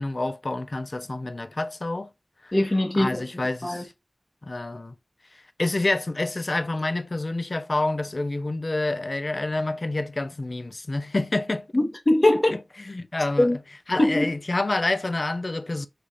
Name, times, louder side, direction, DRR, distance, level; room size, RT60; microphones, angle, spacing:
voice 1, 0.0-2.1 2.4-2.5 2.9-3.9 4.4-4.9 5.3-11.7 12.5-13.6 13.9-15.9, left 2 dB, 55° left, 0.4 m, -28 dB
voice 2, 2.5-3.2 3.6-3.8 11.7-12.5 13.4-13.6 14.0-14.2, left 1 dB, 40° left, 1.2 m, -21 dB
3.3 x 2.4 x 4.1 m
wide cardioid pair, 40°, 0 cm